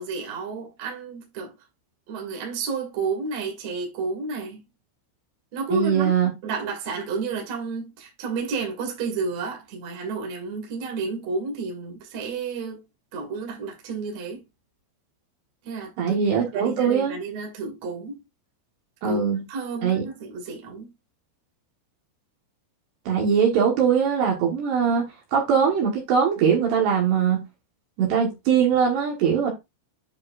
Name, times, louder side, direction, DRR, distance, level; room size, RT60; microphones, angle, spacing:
voice 1, 0.0-1.5 2.1-4.6 5.5-6.1 6.4-12.8 13.1-14.4 15.6-16.2 16.5-18.2 19.0-19.2 19.5-20.9, right 4 dB, 45° right, 2.3 m, -31 dB
voice 2, 5.7-6.3 16.0-17.1 19.0-19.4 19.8-20.0 23.1-25.1 25.3-27.4 28.0-29.5, right 7 dB, 65° right, 3.1 m, -21 dB
10.0 x 5.2 x 2.5 m
omnidirectional pair, 5.9 m